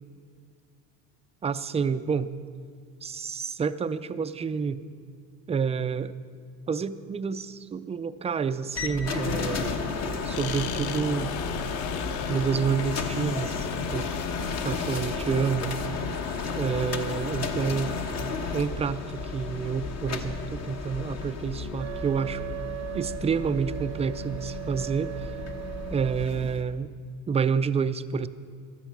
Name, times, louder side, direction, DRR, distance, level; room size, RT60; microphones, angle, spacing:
voice 1, 1.4-2.3 3.0-4.8 5.5-6.1 6.7-9.8 10.2-11.3 12.3-14.1 14.6-15.7 16.6-17.9 18.5-22.4 22.9-25.1 25.9-26.9 27.3-28.3, right 6 dB, 15° right, 12 dB, 0.4 m, -28 dB
sound 1, 8.7-26.6, left 4 dB, 40° left, 1.2 m, -33 dB
sound 2, 10.3-17.0, left 11 dB, 70° left, 0.7 m, -40 dB
Wind instrument woodwind instrument, 21.8-26.3, right 17 dB, 85° right, 0.6 m, -38 dB
15.5 x 11.0 x 6.0 m, 2.1 s
cardioid pair, 115°, 38 cm